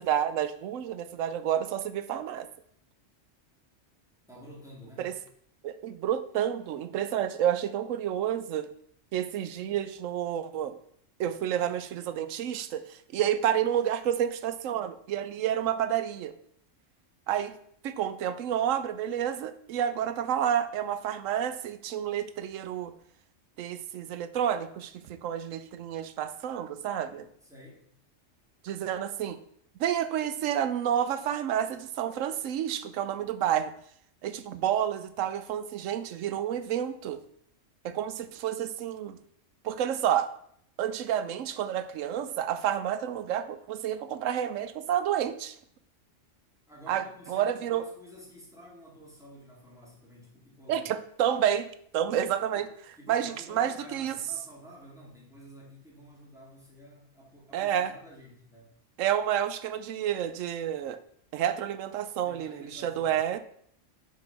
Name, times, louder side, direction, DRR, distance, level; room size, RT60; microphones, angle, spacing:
voice 1, 0.0-2.5 5.0-5.1 5.6-8.7 9.1-10.8 11.2-16.3 17.3-17.6 17.8-22.9 23.6-27.3 28.6-29.4 29.8-33.7 34.2-37.2 37.8-39.2 39.6-40.3 40.8-45.6 46.9-47.8 50.7-51.7 51.9-52.7 53.1-54.2 57.5-57.9 59.0-61.0 61.3-63.4, right 10 dB, 85° right, 12 dB, 1.0 m, -29 dB
voice 2, 4.3-5.1 27.4-27.9 46.7-50.9 52.5-52.7 53.0-58.7 62.2-63.2, equal, ahead, -4 dB, 2.3 m, -50 dB
6.1 x 4.8 x 5.7 m, 0.67 s
omnidirectional pair, 1.3 m